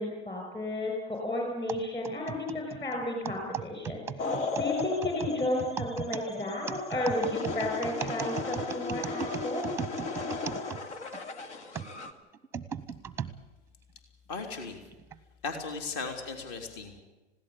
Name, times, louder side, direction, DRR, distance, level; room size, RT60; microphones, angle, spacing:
voice 1, 0.0-9.7, left 1 dB, 15° left, 1 dB, 5.6 m, -33 dB
sound 1, 1.7-11.2 11.7-13.3 14.0-14.1 14.9-15.2, right 8 dB, 5° right, 0.9 m, -37 dB
sound 2, 4.2-12.1, left 4 dB, 75° left, 2.5 m, -36 dB
voice 2, 14.3-14.8 15.4-17.0, left 4 dB, 40° left, 5 dB, 3.4 m, -36 dB
20.5 x 16.5 x 8.5 m, 1.1 s
hypercardioid pair, 130°, 35 cm